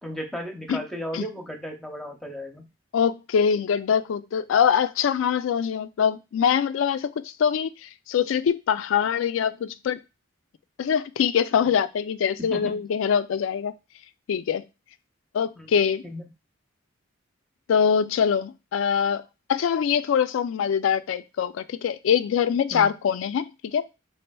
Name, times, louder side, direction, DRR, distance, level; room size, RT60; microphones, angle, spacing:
voice 1, 0.0-2.7 12.5-12.8 15.6-15.7 16.1-16.2 22.7-22.9, equal, ahead, 0.6 m, -35 dB
voice 2, 2.9-10.0 10.8-13.7 14.3-14.6 15.3-16.0 17.7-19.2 19.5-23.8, left 7 dB, 80° left, 0.3 m, -23 dB
4.3 x 3.3 x 2.2 m
head